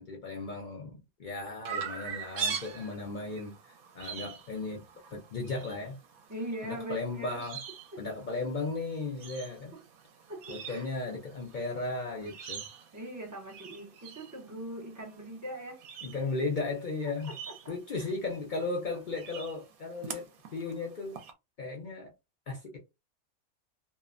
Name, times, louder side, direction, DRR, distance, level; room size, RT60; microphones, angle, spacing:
voice 1, 0.0-4.8 5.1-6.0 6.6-7.6 8.0-9.7 10.5-12.7 16.0-17.3 17.7-21.2 21.6-22.1 22.5-22.8, left 3 dB, 60° left, 0.4 m, -36 dB
Chirp tweet, 1.7-21.3, right 6 dB, 75° right, 1.1 m, -44 dB
voice 2, 6.3-7.4 7.9-8.0 10.3-10.9 12.9-15.9 17.3-18.1, right 1 dB, 30° right, 0.3 m, -41 dB
2.8 x 2.0 x 2.4 m
omnidirectional pair, 1.5 m